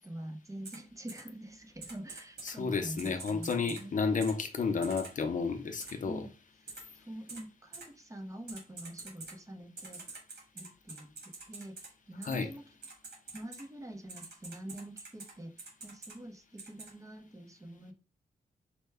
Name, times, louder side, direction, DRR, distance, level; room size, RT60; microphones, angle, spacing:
voice 1, 0.0-4.0 6.0-6.3 7.1-10.0 10.5-12.6 13.3-17.9, right 1 dB, 20° right, 5 dB, 0.7 m, -46 dB
Typing, 0.6-0.8 1.1-1.2 1.8-2.5 3.0-3.8 4.2-4.3 4.8-5.1 5.8-5.9 6.7-6.8 7.3-7.4 7.7-7.8 8.5-9.3 9.8-11.9 12.2-12.3 12.8-13.6 14.1-15.3 15.6-16.1 16.6-16.9, right 3 dB, 85° right, 2.0 m, -45 dB
voice 2, 2.4-6.3 12.2-12.5, left 5 dB, 50° left, 6 dB, 0.6 m, -32 dB
4.5 x 2.2 x 3.3 m, 0.33 s
cardioid pair, 95°, 17 cm